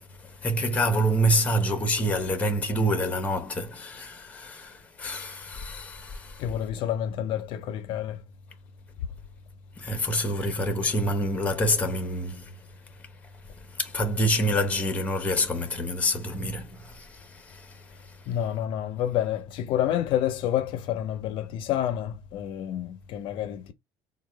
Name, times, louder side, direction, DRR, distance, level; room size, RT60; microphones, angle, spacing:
voice 1, 0.0-6.5 9.8-12.5 13.7-18.2, equal, 15° left, 0.8 m, -27 dB
voice 2, 6.4-8.2 18.3-23.7, left 11 dB, 65° left, 0.5 m, -29 dB
4.2 x 2.2 x 3.2 m
cardioid pair, 145°, 9 cm